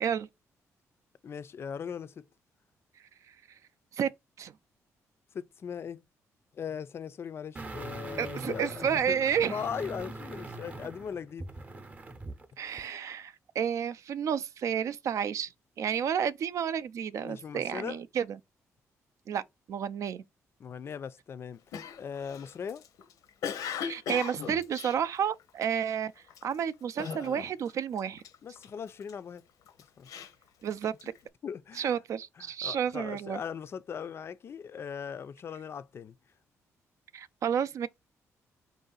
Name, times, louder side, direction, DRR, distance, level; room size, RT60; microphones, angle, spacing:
voice 1, 1.2-2.2 5.3-6.0 6.5-11.5 17.2-18.0 20.6-21.6 22.0-22.8 28.4-29.4 30.0-30.1 31.4-31.9 32.6-36.1, left 7 dB, 45° left, 0.4 m, -39 dB
sound 1, 7.6-12.5 12.8-12.9, right 2 dB, 25° right, 0.7 m, -42 dB
voice 2, 8.2-9.6 12.6-15.5 15.8-18.4 19.3-19.4 19.7-20.2 23.8-26.1 26.4-28.2 30.6-31.1 31.7-33.4 37.1-37.9, right 8 dB, 60° right, 0.4 m, -31 dB
Cough, 21.7-25.8 26.3-26.6 27.0-27.7 28.0-29.1 29.7-31.2, left 7 dB, 85° left, 0.7 m, -38 dB
4.8 x 2.6 x 3.8 m
cardioid pair, 125°, 6 cm